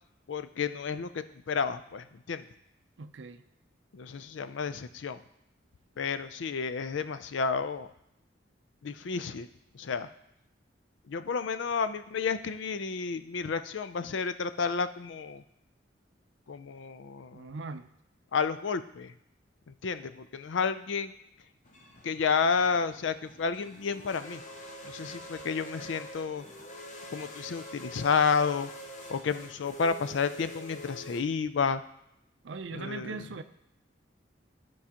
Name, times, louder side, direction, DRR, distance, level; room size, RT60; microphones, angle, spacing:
voice 1, 0.3-2.5 3.9-5.2 6.0-7.9 8.8-9.5 9.7-10.1 11.1-15.4 16.5-17.5 18.3-19.1 19.7-21.1 22.0-24.4 24.8-26.4 27.1-28.7 29.1-31.8 32.7-33.2, left 5 dB, 75° left, 12 dB, 0.4 m, -31 dB
voice 2, 3.0-3.4 17.3-17.9 32.4-33.4, right 4 dB, 75° right, 9 dB, 0.5 m, -40 dB
sound 1, 21.6-31.2, equal, 40° left, 0.9 m, -46 dB
14.0 x 4.7 x 2.9 m, 0.81 s
head